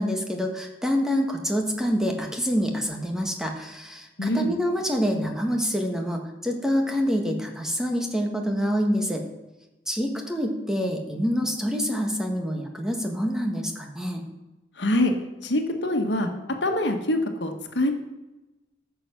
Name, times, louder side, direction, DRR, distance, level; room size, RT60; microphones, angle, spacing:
voice 1, 0.0-9.2 9.9-14.2, equal, 5° right, 2 dB, 1.5 m, -26 dB
voice 2, 4.2-4.5 14.8-15.1 15.4-16.3 16.6-17.9, left 1 dB, 80° left, 4 dB, 1.4 m, -24 dB
14.0 x 7.0 x 5.9 m, 1.0 s
head